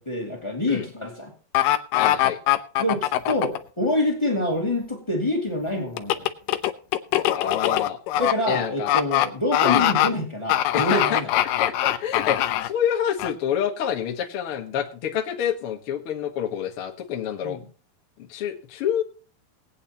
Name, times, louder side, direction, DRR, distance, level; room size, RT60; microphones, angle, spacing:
voice 1, 0.0-1.3 2.8-6.3 8.1-11.3 17.4-17.7, left 1 dB, 10° left, 0 dB, 1.4 m, -26 dB
sound 1, 1.5-3.6 6.0-8.3 8.9-9.3 9.5-10.1 10.5-12.7 13.2-13.3, left 13 dB, 80° left, 2.0 m, -21 dB
voice 2, 2.0-2.4 7.3-8.0 8.5-8.9 9.6-9.9 10.7-11.2 11.6-17.6 18.3-19.0, left 9 dB, 60° left, 1 dB, 1.4 m, -27 dB
20.5 x 8.8 x 2.9 m, 0.39 s
omnidirectional pair, 4.6 m